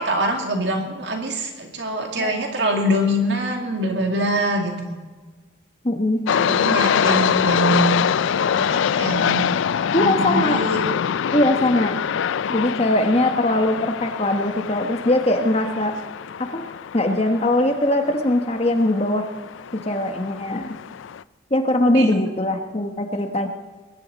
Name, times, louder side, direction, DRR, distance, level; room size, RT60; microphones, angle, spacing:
voice 1, 0.0-5.0 6.3-7.9 8.3-9.5 9.9-10.8 21.9-22.2, right 1 dB, 60° right, 3 dB, 2.3 m, -24 dB
voice 2, 5.8-6.2 9.9-10.6 11.3-12.0 12.5-15.9 16.5-16.6 16.9-19.3 19.8-20.8 21.5-23.5, left 1 dB, 30° left, 5 dB, 1.1 m, -21 dB
sound 1, 6.3-21.2, left 8 dB, 75° left, 0.3 m, -24 dB
21.5 x 11.5 x 4.1 m, 1.4 s
head